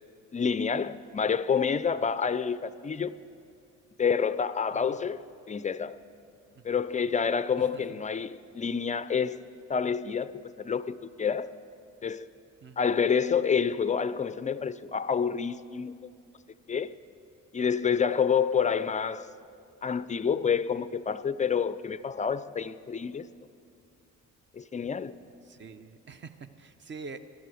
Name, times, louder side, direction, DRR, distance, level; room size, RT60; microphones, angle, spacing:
voice 1, 0.3-3.1 4.0-6.0 6.6-9.4 9.7-11.5 12.0-12.3 12.8-16.1 16.7-16.9 17.5-19.3 19.8-23.3 24.5-25.1, left 6 dB, 25° left, 0.3 m, -28 dB
voice 2, 7.6-8.0 12.6-13.0 25.4-27.2, right 4 dB, 40° right, 0.8 m, -46 dB
15.0 x 11.0 x 6.3 m
cardioid pair, 90°, 30 cm